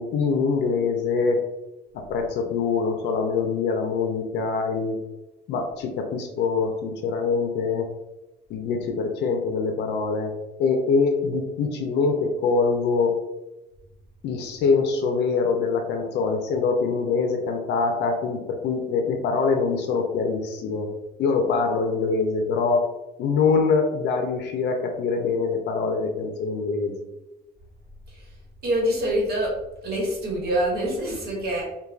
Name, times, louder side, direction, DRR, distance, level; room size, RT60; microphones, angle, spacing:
voice 1, 0.0-1.4 1.9-5.0 5.5-7.9 8.5-10.3 10.6-13.2 14.2-20.9 21.2-22.8 23.2-27.1, left 4 dB, 90° left, 4 dB, 0.5 m, -24 dB
voice 2, 28.6-29.5 29.8-31.6, right 1 dB, 70° right, -2 dB, 1.1 m, -25 dB
3.2 x 2.2 x 2.3 m, 0.98 s
cardioid pair, 105°, 17 cm